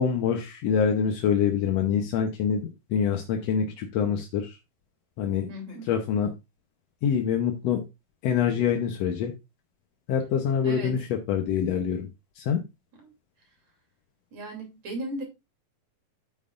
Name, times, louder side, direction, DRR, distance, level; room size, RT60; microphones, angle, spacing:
voice 1, 0.0-4.6 5.2-5.5 5.8-6.3 7.0-7.8 8.2-9.3 10.1-12.1 12.4-12.6, left 7 dB, 65° left, 4 dB, 1.8 m, -25 dB
voice 2, 5.5-5.8 10.6-10.9 14.3-15.2, right 1 dB, 55° right, 2 dB, 4.2 m, -36 dB
9.1 x 8.8 x 2.5 m, 0.24 s
omnidirectional pair, 3.7 m